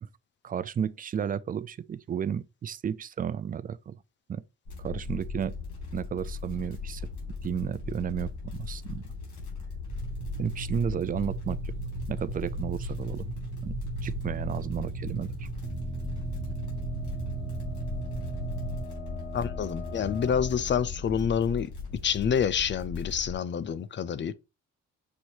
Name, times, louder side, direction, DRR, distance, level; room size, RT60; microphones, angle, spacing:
voice 1, 0.4-4.0 4.3-4.4 4.8-5.5 5.9-7.0 7.4-9.0 10.4-11.7 12.1-13.3 13.6-13.8 14.0-15.5, right 8 dB, 30° right, 0.4 m, -33 dB
sound 1, 4.7-23.4, left 4 dB, 75° left, 2.6 m, -38 dB
sound 2, 9.9-18.9, right 4 dB, 85° right, 1.2 m, -36 dB
sound 3, 15.6-22.2, equal, 20° left, 1.6 m, -41 dB
voice 2, 19.3-21.7 22.0-24.3, left 7 dB, 40° left, 0.5 m, -27 dB
6.2 x 2.6 x 2.9 m
cardioid pair, 90°, 30 cm